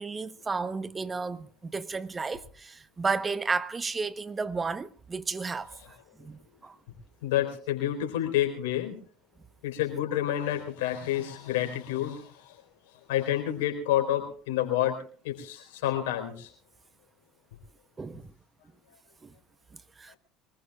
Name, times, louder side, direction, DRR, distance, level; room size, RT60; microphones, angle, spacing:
voice 1, 0.0-5.7 6.2-6.8 18.0-18.2 19.2-19.3 20.0-20.1, right 4 dB, 25° right, 1.0 m, -32 dB
voice 2, 7.2-9.0 9.6-12.6 13.1-15.0 15.2-16.5, left 12 dB, 75° left, 4.1 m, -29 dB
24.0 x 20.0 x 2.4 m
hypercardioid pair, 70°, 0 cm